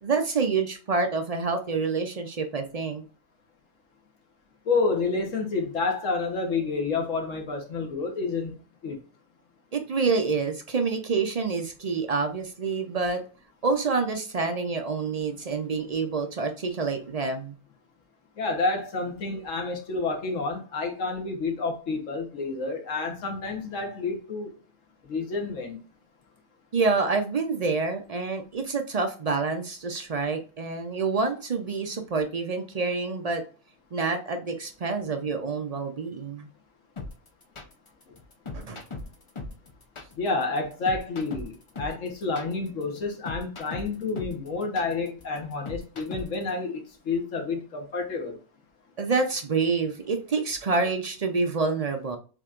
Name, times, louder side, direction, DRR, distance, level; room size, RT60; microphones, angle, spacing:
voice 1, 0.0-3.0 9.7-13.2 13.6-17.5 26.7-33.4 33.9-36.5 38.5-38.8 49.0-52.2, right 4 dB, 65° right, 0.3 m, -27 dB
voice 2, 4.6-8.5 8.8-9.0 18.4-24.5 25.0-25.8 40.2-48.4, left 3 dB, 65° left, 1.4 m, -29 dB
sound 1, 37.0-46.5, left 3 dB, 45° left, 0.4 m, -39 dB
7.0 x 2.9 x 2.4 m
omnidirectional pair, 1.5 m